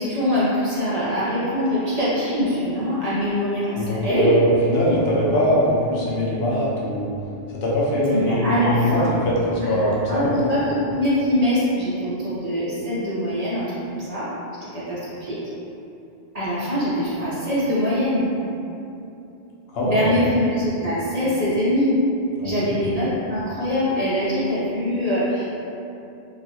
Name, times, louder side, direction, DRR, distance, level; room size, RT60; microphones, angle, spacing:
voice 1, 0.0-4.3 8.1-9.1 9.6-14.3 14.7-15.4 16.3-18.3 19.8-22.0 22.4-25.4, equal, 40° right, -10 dB, 0.8 m, -23 dB
voice 2, 3.7-7.1 7.6-10.5 19.7-20.2 22.4-22.9, equal, 75° left, -6 dB, 0.9 m, -22 dB
3.1 x 2.7 x 2.7 m, 2.8 s
omnidirectional pair, 1.1 m